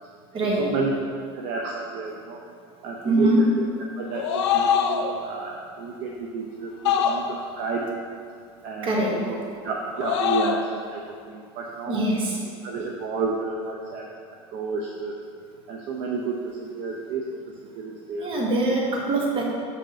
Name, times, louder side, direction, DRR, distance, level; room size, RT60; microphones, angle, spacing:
voice 1, 0.4-0.9 1.3-2.4 2.8-7.9 8.6-9.4 9.6-12.0 12.6-14.1 14.5-15.2 15.7-17.2 17.7-18.3, right 4 dB, 55° right, 0 dB, 0.7 m, -31 dB
voice 2, 3.0-3.4 4.7-4.8 8.8-9.2 11.9-12.4 18.2-19.4, right 2 dB, 35° right, -2 dB, 1.5 m, -23 dB
sound 1, 4.1-5.2 6.9-7.6 9.9-10.7, left 7 dB, 85° left, 0.6 m, -24 dB
6.0 x 4.1 x 5.7 m, 2.2 s
supercardioid pair, 115°, 15 cm